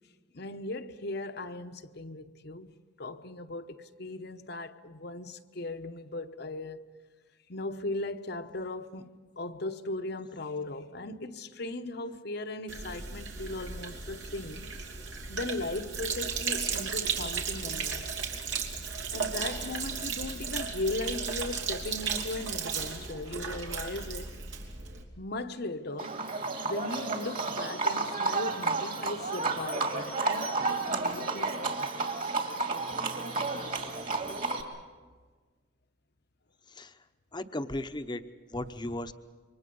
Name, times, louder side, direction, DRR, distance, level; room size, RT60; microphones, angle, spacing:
voice 1, 0.3-2.7 3.0-6.8 7.5-14.7 15.3-18.1 19.1-24.3 25.2-26.1 26.6-32.0 33.3-33.7, left 2 dB, 60° left, 1.0 m, -38 dB
Sink (filling or washing), 12.7-25.0, right 6 dB, 80° right, 3.0 m, -35 dB
Livestock farm animals working animals, 26.0-34.6, right 3 dB, 45° right, 2.5 m, -31 dB
voice 2, 36.7-37.0 37.3-38.2 38.5-39.1, left 1 dB, 25° left, 0.9 m, -36 dB
27.5 x 24.0 x 5.4 m
head